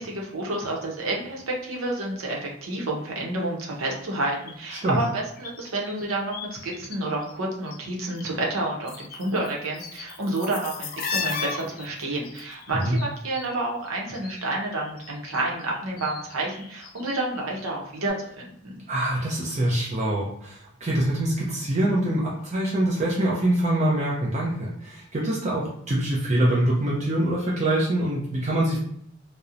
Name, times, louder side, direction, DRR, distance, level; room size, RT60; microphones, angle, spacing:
voice 1, 0.0-18.7, right 2 dB, 90° right, -1 dB, 0.7 m, -29 dB
sound 1, 4.2-7.0 7.2-8.2 8.5-14.4 14.7-17.8 18.0-18.1, left 5 dB, 40° left, 0.3 m, -37 dB
voice 2, 18.9-28.8, right 1 dB, 35° right, -5 dB, 0.5 m, -24 dB
2.8 x 2.0 x 2.4 m, 0.68 s
head